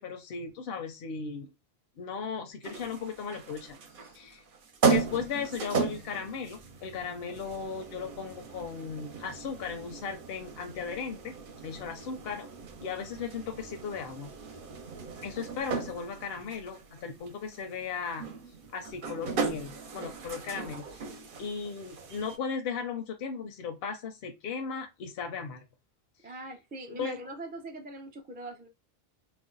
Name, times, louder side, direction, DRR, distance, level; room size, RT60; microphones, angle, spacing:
voice 1, 0.0-1.5 2.0-3.8 4.1-4.4 4.9-11.4 11.6-12.5 12.8-14.3 15.2-18.2 18.7-21.0 21.4-25.6 26.2-26.4 26.9-27.2, left 6 dB, 75° left, 0.8 m, -36 dB
sound 1, 2.6-22.4, right 5 dB, 60° right, 0.8 m, -36 dB
voice 2, 26.2-28.7, right 2 dB, 15° right, 0.3 m, -42 dB
2.4 x 2.1 x 3.8 m
omnidirectional pair, 1.0 m